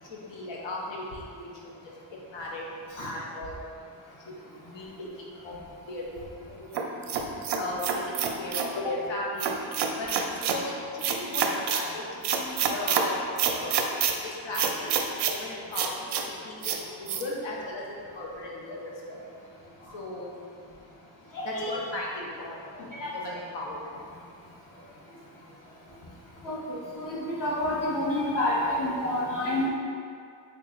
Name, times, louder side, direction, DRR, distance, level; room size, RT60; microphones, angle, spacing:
voice 1, 0.0-1.9 2.3-2.6 3.0-3.6 4.3-4.4 4.7-5.5 5.9-6.8 7.6-9.6 10.0-13.7 14.2-19.2 19.9-20.3 21.4-23.9, left 2 dB, 65° left, -3 dB, 0.9 m, -37 dB
sound 1, 6.7-8.7 9.4-10.6 11.0-11.8 12.2-13.0 13.4-14.1 14.5-15.4 15.7-16.2 16.6-16.8 17.1-17.2, right 7 dB, 60° right, 0.5 m, -27 dB
voice 2, 21.3-21.7 23.0-23.1 26.4-29.7, left 1 dB, 40° left, -8 dB, 1.4 m, -28 dB
3.9 x 2.3 x 3.8 m, 2.3 s
cardioid pair, 90°, 48 cm